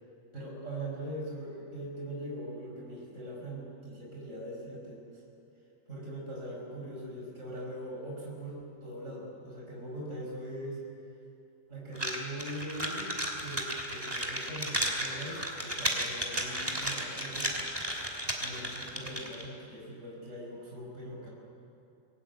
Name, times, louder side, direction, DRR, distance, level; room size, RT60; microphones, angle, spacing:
voice 1, 0.3-5.2 5.9-10.8 11.7-17.7 18.4-21.3, right 1 dB, 40° right, -3 dB, 5.8 m, -41 dB
sound 1, 11.9-19.4, right 1 dB, 15° right, 2.8 m, -34 dB
25.0 x 19.0 x 9.5 m, 2.7 s
omnidirectional pair, 1.9 m